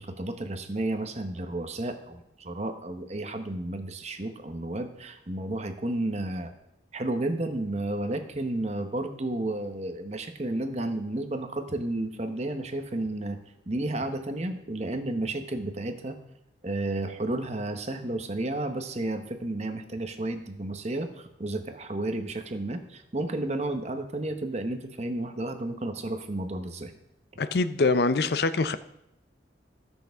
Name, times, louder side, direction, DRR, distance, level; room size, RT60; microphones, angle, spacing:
voice 1, 0.0-6.5 6.9-13.4 13.7-16.2 16.6-26.9, right 2 dB, 35° right, 7 dB, 0.9 m, -32 dB
voice 2, 27.4-28.8, left 3 dB, 60° left, 13 dB, 0.5 m, -24 dB
19.0 x 6.4 x 3.5 m, 0.84 s
head